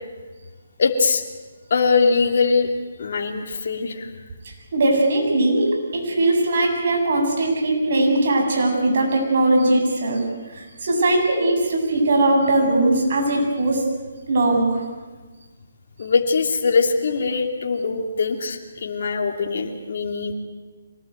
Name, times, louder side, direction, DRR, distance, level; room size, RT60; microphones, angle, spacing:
voice 1, 0.8-1.2 1.7-2.7 3.0-4.1 16.0-20.3, left 4 dB, 55° left, 1 dB, 2.8 m, -21 dB
voice 2, 4.4-10.2 10.6-13.8 14.3-14.8, right 2 dB, 55° right, 1 dB, 7.9 m, -20 dB
25.5 x 19.5 x 9.2 m, 1.3 s
hypercardioid pair, 160°, 0 cm